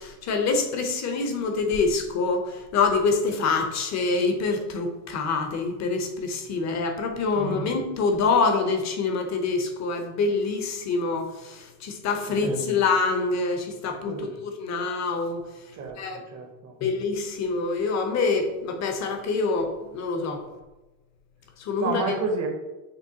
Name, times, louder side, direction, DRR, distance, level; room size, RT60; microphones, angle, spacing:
voice 1, 0.0-15.4 16.0-16.2 16.8-20.4 21.6-22.2, left 4 dB, 35° left, 5 dB, 0.7 m, -26 dB
voice 2, 7.3-7.7 12.3-12.6 14.1-14.4 15.8-16.7 21.8-22.5, right 4 dB, 35° right, 3 dB, 0.7 m, -31 dB
6.3 x 2.3 x 2.7 m, 1.1 s
supercardioid pair, 105°, 48 cm